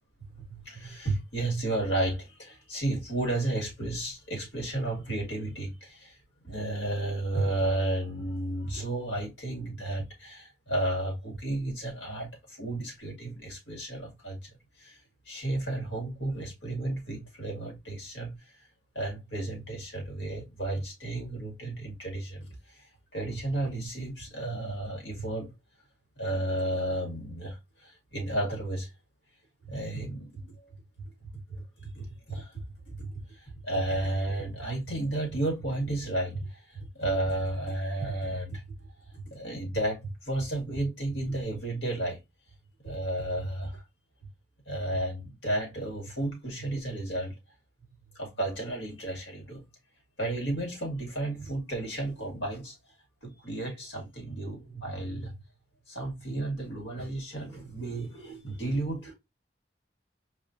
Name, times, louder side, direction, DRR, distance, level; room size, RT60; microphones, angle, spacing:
voice 1, 0.3-6.2 6.4-14.4 14.8-15.0 15.3-18.4 19.0-22.8 23.1-25.5 26.2-28.9 29.6-30.5 31.2-38.6 39.1-42.2 42.8-43.8 44.7-47.3 48.2-49.6 50.2-52.7 53.2-55.4 55.9-59.1, right 1 dB, 85° left, 2.1 m, -33 dB
4.7 x 2.4 x 2.8 m
head